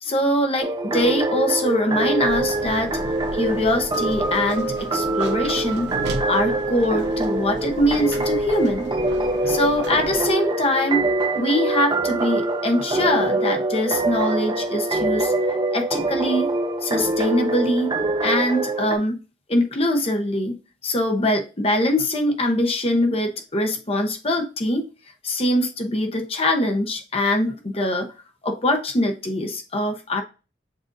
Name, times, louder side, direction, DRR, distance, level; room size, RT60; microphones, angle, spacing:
voice 1, 0.0-3.0 3.3-5.9 6.3-8.9 9.5-11.1 11.3-15.3 15.7-16.5 16.8-17.9 18.2-19.2 19.5-24.8 25.2-28.1 28.4-30.2, left 1 dB, 35° left, 0.8 m, -23 dB
sound 1, 0.6-19.0, right 2 dB, 25° right, 0.6 m, -24 dB
sound 2, 2.2-10.3, right 2 dB, 75° right, 0.8 m, -35 dB
7.4 x 2.6 x 2.5 m
head